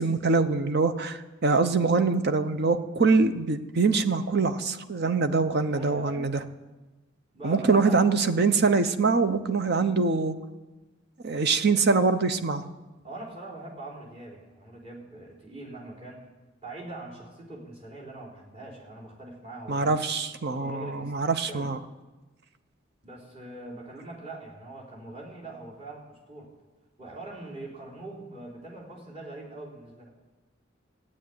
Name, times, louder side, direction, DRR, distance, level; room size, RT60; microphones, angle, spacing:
voice 1, 0.0-6.3 7.4-10.3 11.2-12.6 19.7-21.8, right 4 dB, 55° right, 10 dB, 0.9 m, -24 dB
voice 2, 5.7-6.3 7.3-8.3 13.0-16.2 16.6-20.0 20.5-21.7 23.0-26.5 27.0-30.1, right 2 dB, 30° right, -4 dB, 4.1 m, -42 dB
14.0 x 8.8 x 9.5 m, 1.2 s
head